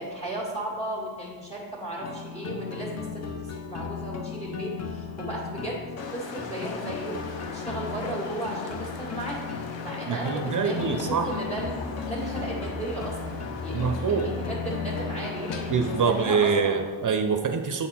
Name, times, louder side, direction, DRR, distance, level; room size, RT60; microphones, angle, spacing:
voice 1, 0.0-5.8 6.1-9.4 9.8-16.8, right 1 dB, 15° left, -5 dB, 1.9 m, -35 dB
sound 1, 2.0-16.1, left 5 dB, 35° left, 0.6 m, -35 dB
sound 2, 6.0-16.6, left 4 dB, 80° left, 0.8 m, -40 dB
voice 2, 10.1-11.3 13.7-14.3 15.7-17.9, right 5 dB, 45° right, 6 dB, 0.6 m, -25 dB
7.5 x 4.1 x 4.2 m, 1.5 s
cardioid pair, 90°, 44 cm